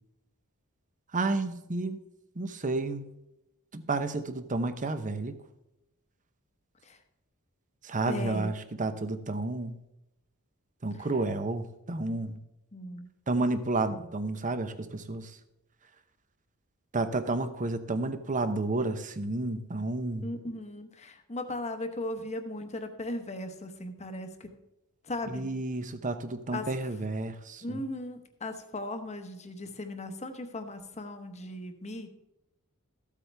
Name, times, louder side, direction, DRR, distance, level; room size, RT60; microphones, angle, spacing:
voice 1, 1.1-2.0 2.4-3.1 3.7-5.4 7.8-9.8 10.8-12.4 13.3-15.4 16.9-20.3 25.3-27.8, right 2 dB, 35° right, 10 dB, 0.8 m, -31 dB
voice 2, 8.1-8.5 12.7-13.1 20.2-24.5 25.1-25.5 26.5-26.7 27.6-32.1, left 1 dB, 30° left, 7 dB, 1.1 m, -37 dB
14.0 x 8.4 x 3.4 m, 0.89 s
head